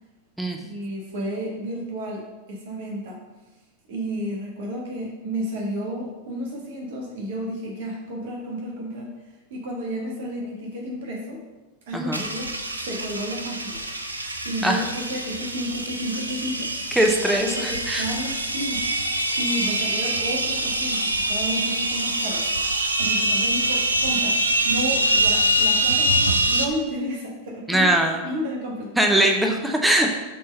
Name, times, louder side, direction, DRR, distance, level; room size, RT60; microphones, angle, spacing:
voice 1, 0.6-3.2 3.9-9.1 9.5-11.4 11.9-12.5 12.8-13.8 14.4-16.9 17.2-22.5 23.0-24.4 24.6-27.9 28.2-29.0 29.4-29.6, equal, 55° right, -2 dB, 1.4 m, -32 dB
voice 2, 11.9-12.2 14.6-14.8 17.0-18.0 27.7-28.2 29.0-30.2, right 1 dB, 5° right, 2 dB, 0.7 m, -21 dB
sound 1, 12.1-26.6, right 1 dB, 80° right, 0.6 m, -24 dB
6.6 x 3.8 x 5.3 m, 1.1 s
figure-of-eight pair, 90°, 0 cm